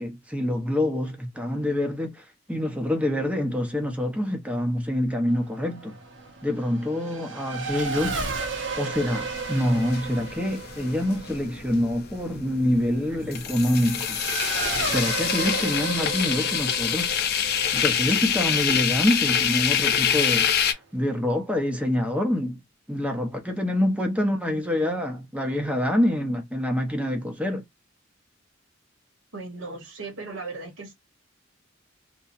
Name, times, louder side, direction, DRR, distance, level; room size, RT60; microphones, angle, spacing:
voice 1, 0.0-6.0 6.4-8.3 8.8-14.2 14.9-17.1 17.7-22.6 22.9-27.6, left 1 dB, 5° right, 0.7 m, -26 dB
Race car auto racing / Accelerating revving vroom, 5.3-19.4, right 4 dB, 65° right, 0.8 m, -34 dB
sound 1, 8.9-20.7, left 8 dB, 55° left, 0.5 m, -26 dB
voice 2, 29.3-30.9, right 3 dB, 85° right, 1.3 m, -37 dB
2.8 x 2.2 x 2.5 m
head